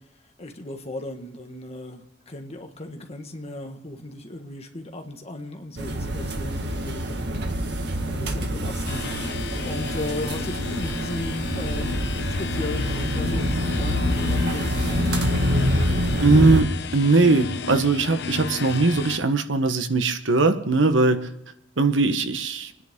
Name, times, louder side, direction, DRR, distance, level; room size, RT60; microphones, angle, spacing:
voice 1, 0.4-7.2 8.1-9.1 9.6-15.2, left 1 dB, 35° left, 4 dB, 1.6 m, -35 dB
sound 1, 5.8-16.6, equal, 60° right, 1.7 m, -26 dB
sound 2, 8.9-19.2, left 5 dB, 60° left, 0.8 m, -32 dB
voice 2, 16.2-21.3 21.8-22.7, right 3 dB, 85° right, 9 dB, 1.2 m, -20 dB
28.0 x 10.0 x 3.7 m, 0.82 s
head